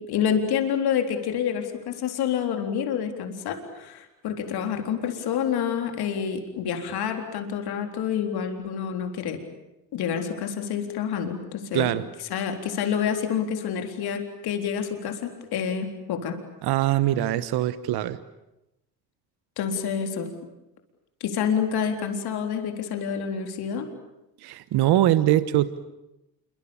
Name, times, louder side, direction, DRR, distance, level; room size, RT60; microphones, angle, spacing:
voice 1, 0.1-9.4 9.9-11.9 12.3-16.4 19.6-20.3 21.2-23.9, left 8 dB, 70° left, 5 dB, 4.0 m, -28 dB
voice 2, 11.7-12.1 16.6-18.2 24.4-25.8, right 13 dB, 75° right, 14 dB, 1.3 m, -22 dB
27.5 x 24.0 x 8.8 m, 0.91 s
supercardioid pair, 75°, 39 cm